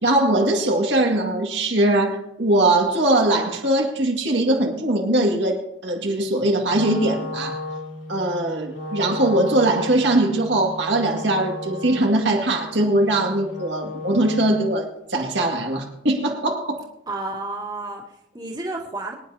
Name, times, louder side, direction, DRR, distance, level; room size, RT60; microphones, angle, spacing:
voice 1, 0.0-5.6 5.8-7.6 8.1-16.8, right 1 dB, 70° right, 1 dB, 2.1 m, -21 dB
Wind instrument woodwind instrument, 6.7-14.9, left 2 dB, 80° left, 2.8 m, -34 dB
voice 2, 17.1-19.1, right 2 dB, 20° right, -1 dB, 2.3 m, -31 dB
24.0 x 10.5 x 2.8 m, 0.82 s
head